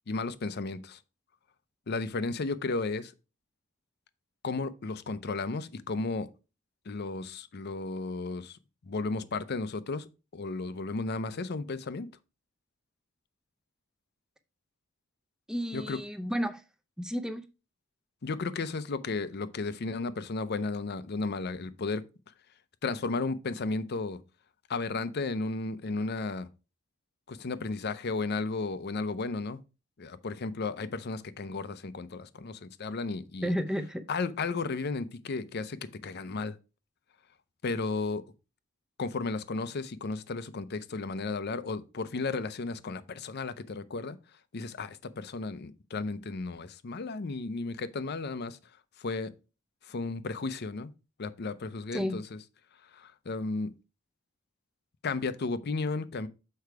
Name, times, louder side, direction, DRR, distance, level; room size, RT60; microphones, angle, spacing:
voice 1, 0.1-1.0 1.9-3.1 4.4-6.3 6.9-8.6 8.9-12.1 15.7-16.0 18.2-22.0 22.8-24.2 24.7-26.5 27.3-29.6 30.0-33.5 34.1-36.6 37.6-38.2 39.0-44.2 44.5-48.6 49.0-49.3 49.9-50.9 51.2-52.2 52.9-53.7 55.0-56.3, left 3 dB, 55° left, 0.6 m, -34 dB
voice 2, 15.5-16.6 17.0-17.5 33.4-34.0 51.9-52.2, equal, 5° right, 0.6 m, -32 dB
6.7 x 4.6 x 4.6 m
head